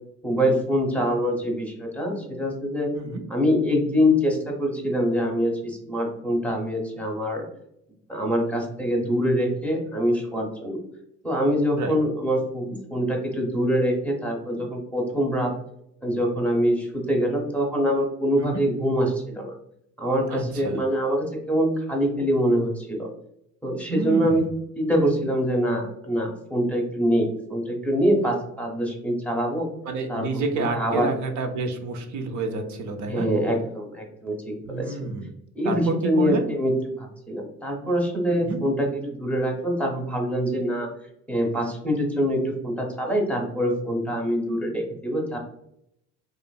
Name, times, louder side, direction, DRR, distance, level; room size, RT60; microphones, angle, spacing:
voice 1, 0.2-2.9 3.3-7.5 8.1-10.8 11.2-15.5 16.0-19.5 20.0-23.1 23.6-24.4 24.8-29.7 30.1-31.1 33.1-35.0 35.5-36.7 37.0-40.9 41.3-45.4, equal, 5° left, 0 dB, 0.7 m, -24 dB
voice 2, 20.3-20.8 23.9-24.4 29.8-33.3 34.6-35.3 35.6-36.4 38.3-38.6, right 3 dB, 70° right, 4 dB, 0.6 m, -29 dB
2.9 x 2.5 x 2.2 m, 0.77 s
cardioid pair, 90°, 30 cm